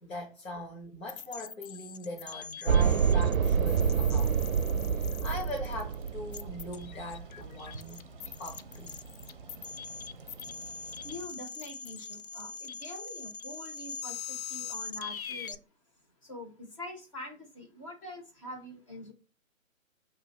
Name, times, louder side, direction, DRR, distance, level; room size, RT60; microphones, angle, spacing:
voice 1, 0.0-4.3 4.9-8.1 8.4-8.9, left 1 dB, 70° left, 1.4 m, -41 dB
sound 1, 1.1-15.6, left 6 dB, 90° left, 0.6 m, -42 dB
sound 2, 2.7-6.9, right 7 dB, 85° right, 0.5 m, -27 dB
sound 3, 5.7-11.3, right 4 dB, 40° right, 0.6 m, -48 dB
voice 2, 11.0-15.6 16.2-19.1, left 1 dB, 25° left, 0.8 m, -44 dB
2.8 x 2.6 x 4.0 m
figure-of-eight pair, 145°, 41 cm